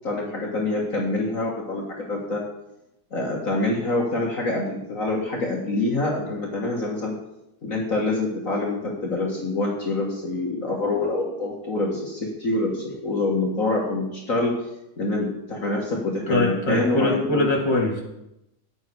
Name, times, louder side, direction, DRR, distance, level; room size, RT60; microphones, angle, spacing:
voice 1, 0.0-1.8 2.1-2.4 3.1-7.1 7.6-14.5 15.0-17.4, left 2 dB, 45° left, -2 dB, 2.2 m, -26 dB
voice 2, 16.3-18.0, left 2 dB, 15° left, -2 dB, 2.5 m, -22 dB
15.0 x 9.5 x 4.7 m, 0.87 s
omnidirectional pair, 2.0 m